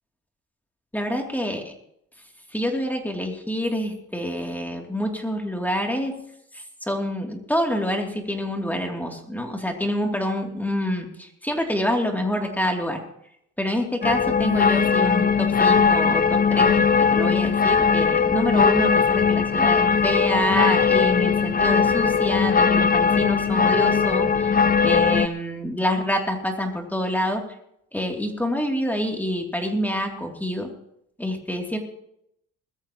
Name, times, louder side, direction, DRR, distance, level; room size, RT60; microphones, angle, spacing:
voice 1, 0.9-1.8 2.5-6.2 6.5-13.0 13.6-24.5 24.8-27.4 27.9-30.7 31.2-31.8, equal, 5° left, 1 dB, 2.9 m, -26 dB
sound 1, 14.0-25.3, left 6 dB, 30° left, 0.7 m, -19 dB
21.0 x 13.5 x 3.1 m, 0.75 s
cardioid pair, 90°, 30 cm